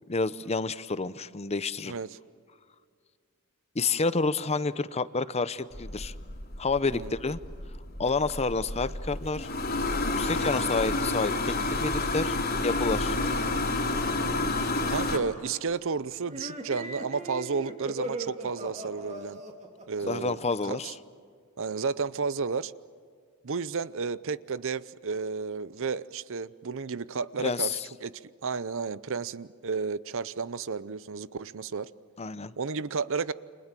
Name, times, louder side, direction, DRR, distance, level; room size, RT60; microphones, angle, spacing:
voice 1, 0.1-1.9 3.7-6.1 6.6-7.4 8.0-9.5 10.0-12.4 12.6-13.2 20.0-20.9 27.4-27.9 32.2-32.5, left 3 dB, 30° left, 0.7 m, -29 dB
voice 2, 1.9-2.2 6.9-7.1 10.2-10.4 13.1-13.2 14.9-19.4 19.9-20.4 20.7-20.9 21.6-22.7 23.4-31.9 32.6-33.3, right 5 dB, 60° right, 0.7 m, -32 dB
sound 1, 5.7-15.2, left 2 dB, 45° left, 3.1 m, -30 dB
sound 2, 16.3-20.9, right 1 dB, 30° right, 2.8 m, -39 dB
29.5 x 26.5 x 7.6 m
head